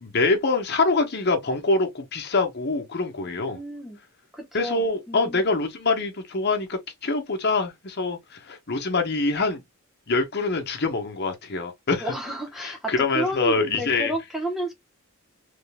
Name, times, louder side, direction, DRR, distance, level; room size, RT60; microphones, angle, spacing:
voice 1, 0.0-3.6 4.5-9.6 10.1-12.0 12.6-14.1, left 3 dB, 50° left, 0.9 m, -25 dB
voice 2, 3.3-4.0 4.3-5.4 12.0-14.7, right 1 dB, ahead, 0.9 m, -31 dB
3.6 x 3.4 x 2.2 m
head